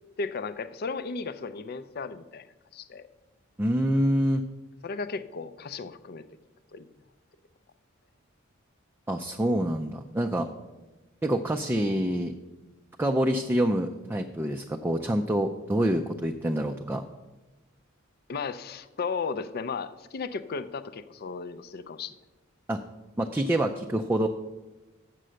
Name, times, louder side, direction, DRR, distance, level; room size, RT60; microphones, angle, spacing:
voice 1, 0.2-2.5 2.7-3.1 4.8-6.2 6.7-6.9 18.3-22.1, left 4 dB, 50° left, 13 dB, 0.5 m, -35 dB
voice 2, 3.6-4.4 9.1-10.5 11.2-12.3 13.0-17.0 22.7-22.8 23.2-24.3, right 1 dB, 10° right, 3 dB, 0.4 m, -26 dB
7.6 x 6.8 x 6.3 m, 1.1 s
head